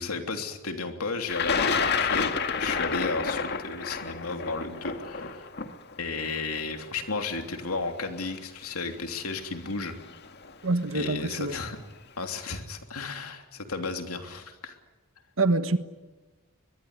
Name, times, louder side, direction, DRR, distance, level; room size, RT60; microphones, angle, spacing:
voice 1, 0.0-2.3 2.6-5.5 6.0-10.0 10.9-11.8 12.2-14.8, left 4 dB, 85° left, 3.2 m, -33 dB
Thunder, 1.3-7.3 8.2-8.3 9.4-9.7 10.0-10.5, left 5 dB, 50° left, 1.9 m, -29 dB
voice 2, 10.6-11.6 15.4-15.8, right 2 dB, 65° right, 1.5 m, -25 dB
23.0 x 22.0 x 9.8 m
head